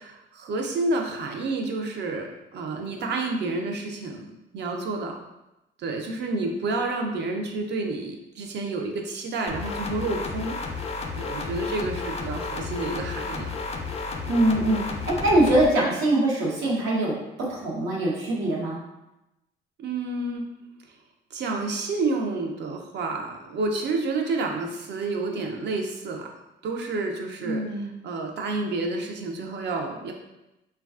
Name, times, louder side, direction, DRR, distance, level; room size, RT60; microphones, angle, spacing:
voice 1, 0.0-4.2 4.5-5.2 5.8-10.6 11.2-13.6 19.8-20.4 21.3-26.3 26.6-30.1, right 3 dB, 60° right, 2 dB, 0.5 m, -29 dB
sound 1, 9.5-15.7, left 4 dB, 30° left, 0.4 m, -32 dB
voice 2, 14.3-14.8 15.1-17.1 17.5-18.8 27.4-27.9, right 1 dB, 90° right, -4 dB, 0.8 m, -23 dB
3.1 x 2.3 x 2.3 m, 0.94 s
cardioid pair, 90°, 20 cm